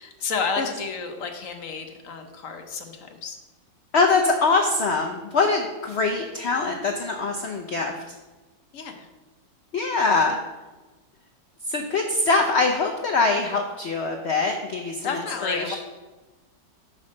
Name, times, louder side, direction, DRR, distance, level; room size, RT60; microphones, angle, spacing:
voice 1, 0.0-3.4 8.7-9.1 15.0-15.8, left 5 dB, 60° left, 5 dB, 1.0 m, -31 dB
voice 2, 3.9-8.1 9.7-10.4 11.7-15.8, left 3 dB, 85° left, 2 dB, 0.5 m, -23 dB
5.8 x 5.3 x 6.2 m, 1.2 s
omnidirectional pair, 1.9 m